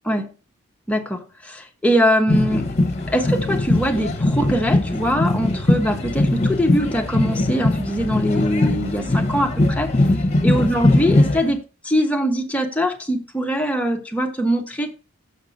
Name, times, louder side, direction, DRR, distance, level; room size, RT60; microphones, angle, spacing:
voice 1, 0.9-2.8 3.1-9.9 10.4-14.9, equal, 5° left, 1.2 m, -22 dB
sound 1, 2.3-11.5, left 2 dB, 35° left, 1.2 m, -20 dB
6.8 x 5.8 x 5.2 m
head